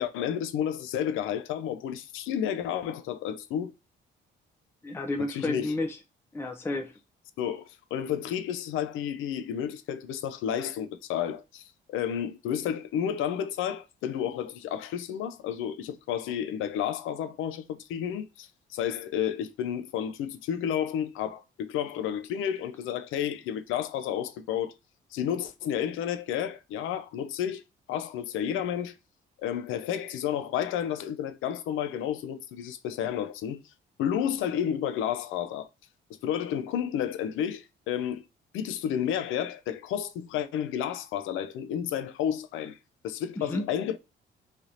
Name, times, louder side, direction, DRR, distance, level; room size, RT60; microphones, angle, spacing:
voice 1, 0.0-3.7 5.3-5.7 7.4-24.7 25.1-27.6 27.9-29.0 29.4-33.6 34.0-35.7 36.2-38.2 38.5-42.8 43.0-44.0, left 9 dB, 85° left, 0.4 m, -31 dB
voice 2, 4.8-6.0 6.3-7.0 43.4-43.7, left 2 dB, 10° left, 0.4 m, -31 dB
3.3 x 2.8 x 2.4 m
cardioid pair, 90°, 20 cm